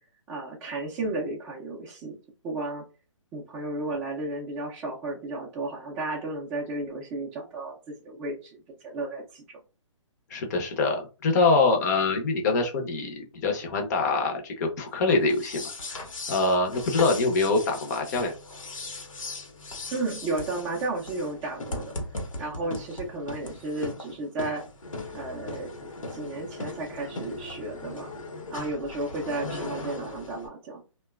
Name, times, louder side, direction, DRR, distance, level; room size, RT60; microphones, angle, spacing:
voice 1, 0.3-2.1 2.4-2.8 3.3-8.6 8.8-9.6 19.9-21.9 22.4-24.6 25.1-28.1 28.5-30.8, right 2 dB, 10° right, -6 dB, 0.4 m, -33 dB
voice 2, 10.3-18.3, left 3 dB, 35° left, 3 dB, 0.6 m, -25 dB
sound 1, 15.2-30.5, left 2 dB, 80° left, 0.9 m, -38 dB
2.8 x 2.2 x 2.3 m, 0.32 s
hypercardioid pair, 145°, 17 cm